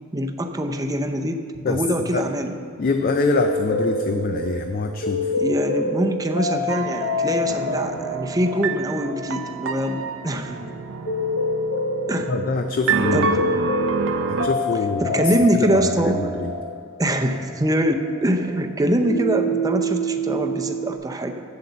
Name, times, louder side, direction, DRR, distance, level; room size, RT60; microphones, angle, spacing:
voice 1, 0.1-2.6 5.4-10.7 12.1-12.3 13.1-13.5 15.0-16.2 17.0-21.4, right 1 dB, 20° right, 5 dB, 0.6 m, -24 dB
voice 2, 2.8-5.3 12.3-13.3 14.3-16.5, left 3 dB, 45° left, 6 dB, 0.4 m, -25 dB
sound 1, 3.1-18.7 19.0-20.9, left 1 dB, 85° left, 1.2 m, -27 dB
sound 2, 6.7-14.5, right 5 dB, 65° right, 0.5 m, -28 dB
7.9 x 7.4 x 6.8 m, 2.3 s
head